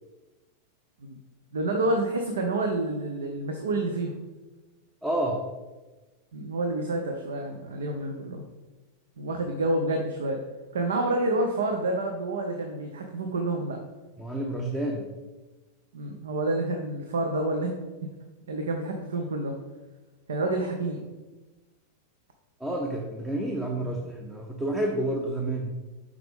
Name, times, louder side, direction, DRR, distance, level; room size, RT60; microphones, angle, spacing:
voice 1, 1.5-4.1 6.3-8.4 9.2-10.4 10.7-13.8 15.9-17.7 18.5-19.5 20.3-21.1 23.8-24.0, right 2 dB, 65° right, 3 dB, 0.6 m, -28 dB
voice 2, 5.0-5.4 14.2-15.1 22.6-25.8, right 1 dB, 5° right, 0 dB, 0.7 m, -29 dB
5.7 x 4.6 x 3.6 m, 1.2 s
figure-of-eight pair, 90°, 0 cm